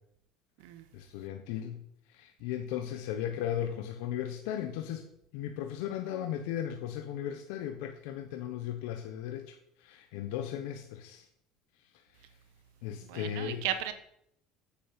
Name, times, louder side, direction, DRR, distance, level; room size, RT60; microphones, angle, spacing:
voice 1, 0.9-1.8 2.1-5.0 5.3-11.3 12.8-13.6, left 10 dB, 80° left, 6 dB, 1.0 m, -36 dB
voice 2, 13.0-13.9, right 11 dB, 80° right, 10 dB, 1.4 m, -35 dB
8.4 x 8.0 x 6.9 m, 0.73 s
supercardioid pair, 95°, 0 cm